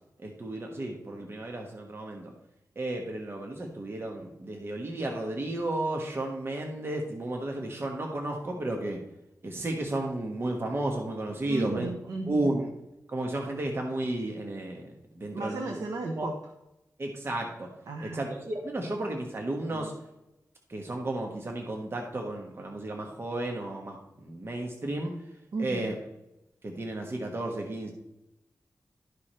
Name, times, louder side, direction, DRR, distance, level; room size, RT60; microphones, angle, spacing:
voice 1, 0.2-2.3 2.7-9.0 9.4-11.9 12.3-12.7 13.1-15.7 16.2-16.3 17.0-17.7 18.0-19.9 20.7-25.1 25.6-26.0 26.6-27.9, right 2 dB, 40° right, 1 dB, 1.3 m, -33 dB
voice 2, 11.5-12.5 15.3-16.3 17.9-18.3 19.7-19.9 25.5-25.9, right 3 dB, 80° right, 2 dB, 1.0 m, -35 dB
12.5 x 4.9 x 4.4 m, 0.90 s
wide cardioid pair, 90°, 6 cm